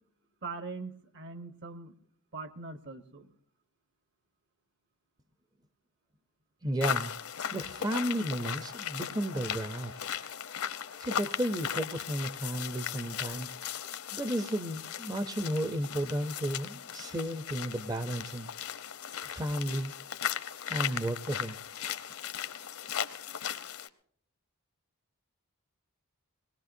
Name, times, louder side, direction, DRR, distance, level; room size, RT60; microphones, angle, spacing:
voice 1, 0.4-1.9 2.3-3.3, right 4 dB, 55° right, 11 dB, 1.1 m, -42 dB
voice 2, 6.6-7.1 7.5-10.0 11.0-13.5 14.1-18.5 19.2-19.9 20.7-21.6, right 1 dB, 15° right, 10 dB, 0.5 m, -33 dB
sound 1, 6.8-23.9, left 9 dB, 75° left, 0.8 m, -37 dB
22.5 x 19.5 x 2.6 m, 0.66 s
head